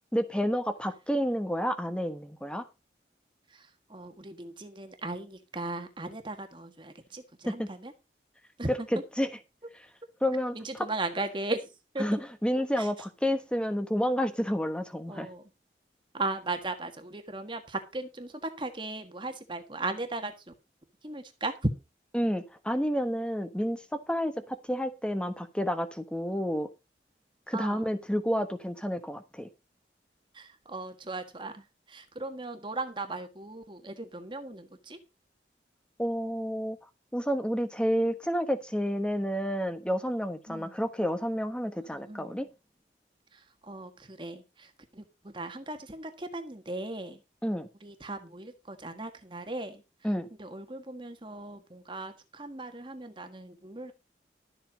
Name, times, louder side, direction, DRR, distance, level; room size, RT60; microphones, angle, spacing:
voice 1, 0.1-2.7 7.5-7.7 8.7-9.3 10.2-10.9 12.0-15.3 22.1-26.7 27.5-29.5 36.0-36.8 37.1-42.5 47.4-47.7 50.0-50.3, equal, 5° left, 10 dB, 1.2 m, -30 dB
voice 2, 3.5-7.9 8.6-8.7 10.5-12.2 12.8-12.9 15.1-15.4 16.1-20.5 21.0-21.7 27.5-27.9 30.3-35.0 40.5-40.7 41.8-42.4 43.3-47.2 47.8-49.8 50.4-53.9, right 2 dB, 25° right, 7 dB, 1.5 m, -37 dB
13.0 x 7.6 x 5.1 m, 0.27 s
head